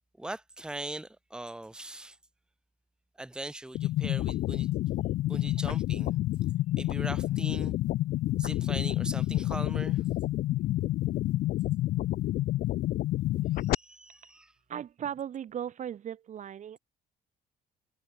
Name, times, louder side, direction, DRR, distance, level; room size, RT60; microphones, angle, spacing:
voice 1, 0.2-2.2 3.2-4.7 5.3-6.2 6.8-7.8 8.4-10.0 13.5-14.5, right 1 dB, 5° right, 1.0 m, -40 dB
sound 1, 3.7-13.7, left 15 dB, 60° left, 0.5 m, -29 dB
voice 2, 14.7-16.8, right 9 dB, 45° right, 1.1 m, -37 dB
cardioid pair, 110°, 17 cm